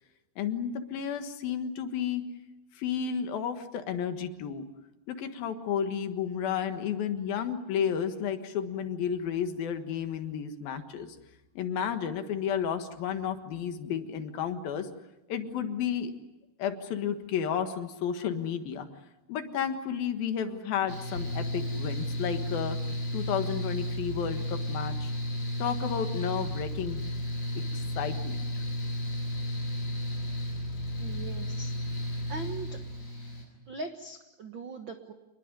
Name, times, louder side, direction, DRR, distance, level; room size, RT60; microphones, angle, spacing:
voice 1, 0.4-2.2 2.8-4.7 5.1-11.2 11.6-14.9 15.3-16.1 16.6-18.9 19.3-22.8 23.1-25.1 25.6-27.0 27.7-28.6, left 8 dB, 70° left, 8 dB, 3.2 m, -32 dB
Mechanical fan, 20.9-33.4, equal, 20° left, 8.0 m, -33 dB
voice 2, 31.0-31.7 32.3-32.8 33.7-35.1, right 3 dB, 85° right, 6 dB, 1.0 m, -40 dB
27.5 x 21.0 x 9.7 m, 1.0 s
omnidirectional pair, 4.6 m